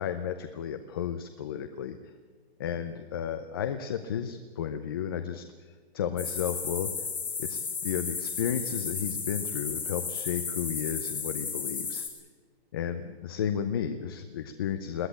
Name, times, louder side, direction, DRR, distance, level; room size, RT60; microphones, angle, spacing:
voice 1, 0.0-2.0 2.6-5.4 5.9-6.9 7.4-12.1 12.7-15.1, left 8 dB, 20° left, 8 dB, 0.6 m, -33 dB
sound 1, 6.2-12.1, left 5 dB, 5° left, 2.0 m, -34 dB
22.0 x 16.0 x 8.5 m, 1.5 s
hypercardioid pair, 165°, 32 cm